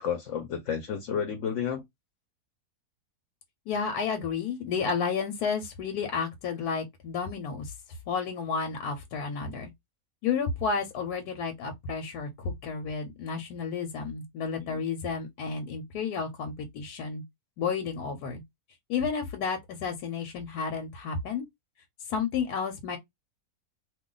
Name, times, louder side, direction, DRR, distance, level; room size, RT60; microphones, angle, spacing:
voice 1, 0.0-1.8 14.6-14.8, left 7 dB, 65° left, 0.9 m, -31 dB
voice 2, 3.7-7.7 8.1-9.7 10.2-17.2 17.6-18.4 18.9-21.5 22.1-23.0, left 5 dB, 85° left, 1.2 m, -31 dB
2.5 x 2.4 x 3.7 m
omnidirectional pair, 1.6 m